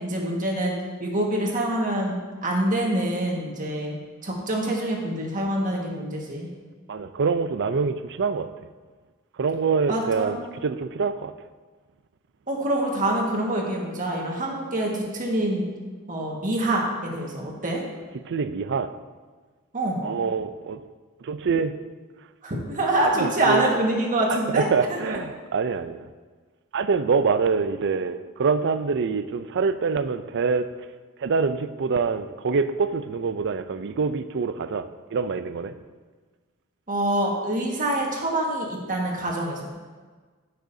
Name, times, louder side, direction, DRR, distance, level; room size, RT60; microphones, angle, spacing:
voice 1, 0.0-6.5 9.9-10.4 12.5-15.7 16.1-17.8 19.7-20.1 22.4-25.2 36.9-39.6, right 1 dB, 40° right, -1 dB, 1.6 m, -26 dB
voice 2, 6.9-8.5 9.4-11.3 18.3-18.9 20.0-20.8 21.2-21.8 23.2-23.6 24.5-26.1 26.7-30.7 31.2-35.7, right 5 dB, 55° right, 12 dB, 0.5 m, -25 dB
15.0 x 6.5 x 2.7 m, 1.4 s
head